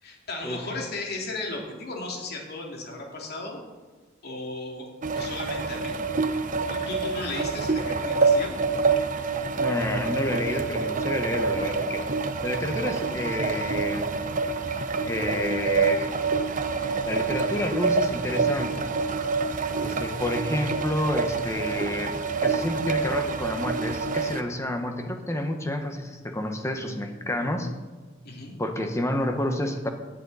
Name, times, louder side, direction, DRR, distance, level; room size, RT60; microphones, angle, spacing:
voice 1, 0.0-3.6 4.2-4.9 5.1-6.0 6.7-8.5 14.6-14.8 28.2-28.6, left 2 dB, 55° left, 0 dB, 2.8 m, -35 dB
sound 1, 5.0-24.4, right 4 dB, 40° right, 0.8 m, -27 dB
voice 2, 9.6-12.0 12.4-14.1 15.0-16.1 17.0-18.9 19.8-22.1 22.4-27.7 28.6-29.9, left 1 dB, 15° left, 5 dB, 1.3 m, -29 dB
17.0 x 10.5 x 4.2 m, 1.3 s
head